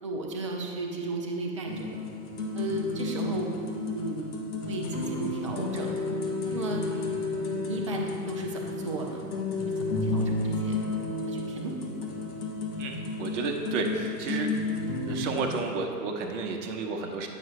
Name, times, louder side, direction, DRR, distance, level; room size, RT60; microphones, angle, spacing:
voice 1, 0.0-2.0 2.5-3.5 3.9-4.3 4.6-5.9 6.4-6.9 7.5-9.3 10.0-10.7 11.2-11.9, right 2 dB, 20° right, 0 dB, 0.3 m, -34 dB
sound 1, 1.7-15.6, left 2 dB, 65° left, 1.2 m, -32 dB
voice 2, 12.8-14.6 15.1-17.3, right 3 dB, 45° right, 2 dB, 0.9 m, -32 dB
8.8 x 5.8 x 3.2 m, 2.4 s
figure-of-eight pair, 110°, 49 cm